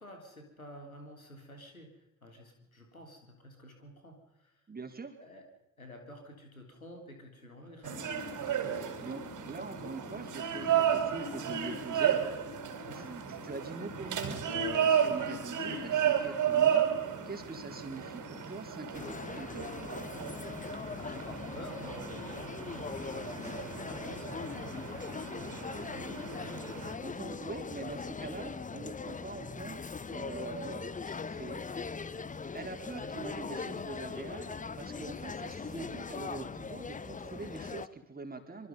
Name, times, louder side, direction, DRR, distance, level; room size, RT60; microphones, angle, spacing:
voice 1, 0.0-4.5 5.2-5.4 5.8-8.2 12.8-13.1 20.6-24.8 25.7-26.1, left 1 dB, 90° left, 3 dB, 3.5 m, -50 dB
voice 2, 4.7-5.1 9.0-12.2 12.9-16.8 17.2-19.7 27.0-31.8 32.5-38.7, right 3 dB, 20° right, 5 dB, 4.4 m, -43 dB
sound 1, 7.8-27.0, right 8 dB, 45° right, 4.4 m, -33 dB
sound 2, 18.9-37.9, left 5 dB, 20° left, 1.1 m, -41 dB
25.5 x 24.5 x 5.3 m, 0.88 s
figure-of-eight pair, 55°, 41 cm